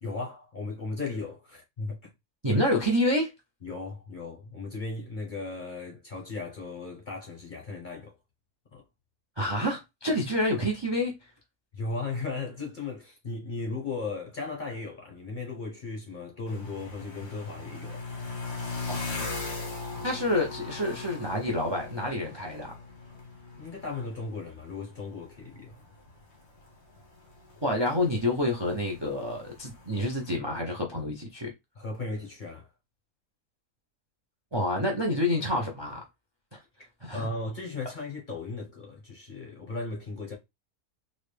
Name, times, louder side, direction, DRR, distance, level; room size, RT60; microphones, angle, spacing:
voice 1, 0.0-2.1 3.6-8.2 8.7-8.8 11.7-18.0 20.0-20.1 23.6-25.8 31.8-32.7 37.1-40.3, left 3 dB, 45° left, 0.7 m, -36 dB
voice 2, 2.4-3.3 9.4-11.1 18.9-19.2 20.0-22.7 27.6-31.5 34.5-36.0 36.5-36.6 37.0-37.2, left 1 dB, 35° right, 0.4 m, -28 dB
sound 1, 16.5-30.4, left 3 dB, 85° left, 1.9 m, -40 dB
3.9 x 2.2 x 3.3 m
omnidirectional pair, 1.7 m